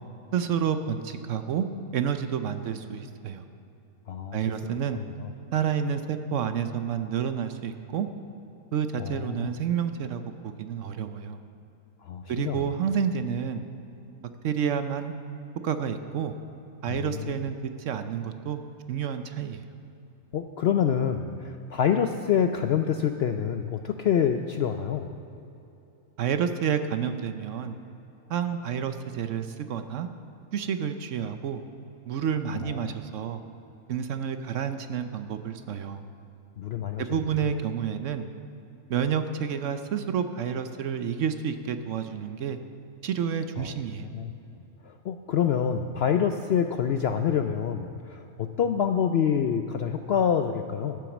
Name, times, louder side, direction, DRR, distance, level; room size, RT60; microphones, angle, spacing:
voice 1, 0.3-1.7 1.9-3.4 4.3-5.0 5.5-8.1 8.7-11.4 12.3-13.6 14.4-15.1 15.6-16.3 16.8-18.6 18.9-19.6 26.2-27.8 28.3-30.1 30.5-31.6 32.1-33.4 33.9-36.0 37.0-38.3 38.9-42.6 43.0-44.0, right 8 dB, 65° right, 9 dB, 0.9 m, -29 dB
voice 2, 9.0-9.5 12.1-12.6 16.9-17.3 20.3-25.1 32.6-32.7 36.6-37.0 43.6-43.7 44.0-44.3 45.1-51.0, left 8 dB, 65° left, 6 dB, 0.6 m, -26 dB
12.0 x 9.0 x 7.1 m, 2.9 s
omnidirectional pair, 1.5 m